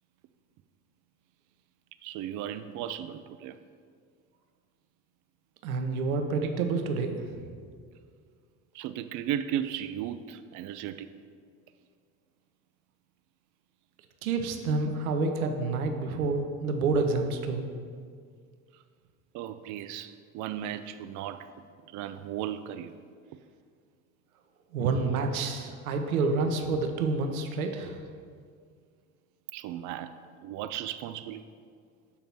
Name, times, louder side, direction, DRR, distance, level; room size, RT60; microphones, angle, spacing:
voice 1, 2.0-3.6 8.7-11.1 18.7-18.8 19.3-21.5 21.9-23.0 29.5-31.4, right 11 dB, 45° right, 11 dB, 0.4 m, -36 dB
voice 2, 5.6-7.5 14.2-17.7 24.7-28.0, right 3 dB, 85° right, 5 dB, 0.8 m, -28 dB
7.1 x 3.9 x 6.0 m, 2.1 s
hypercardioid pair, 65°, 42 cm